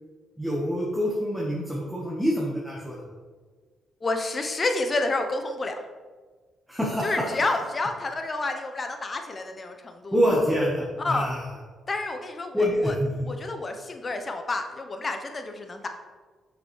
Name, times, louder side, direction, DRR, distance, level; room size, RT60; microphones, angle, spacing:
voice 1, 0.4-3.1 6.7-7.3 10.1-11.4 12.5-13.1, equal, ahead, -4 dB, 1.1 m, -26 dB
voice 2, 4.0-5.8 7.0-10.2 11.0-11.3 11.9-12.9 13.3-15.9, left 2 dB, 30° left, 6 dB, 0.7 m, -29 dB
6.0 x 5.3 x 3.1 m, 1.4 s
cardioid pair, 90°, 0 cm